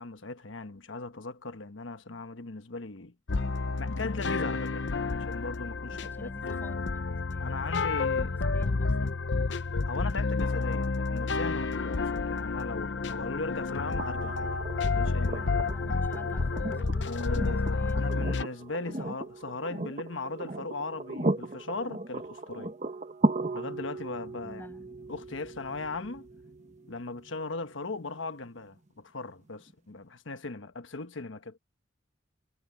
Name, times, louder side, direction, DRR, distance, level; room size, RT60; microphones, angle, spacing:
voice 1, 0.0-3.1 3.8-6.3 7.4-8.3 9.8-14.5 14.9-15.5 17.0-22.7 23.5-24.7 25.1-26.2 26.9-31.6, left 3 dB, 80° left, 1.1 m, -38 dB
sound 1, 3.3-18.4, left 4 dB, 65° left, 0.7 m, -30 dB
voice 2, 6.0-9.2 15.6-18.2 18.9-19.2 24.4-24.9, equal, 10° left, 7.4 m, -47 dB
sound 2, 14.0-27.9 29.7-29.8, right 2 dB, 40° right, 1.0 m, -36 dB
sound 3, 19.3-20.2 23.6-28.5, left 1 dB, 45° left, 2.9 m, -58 dB
head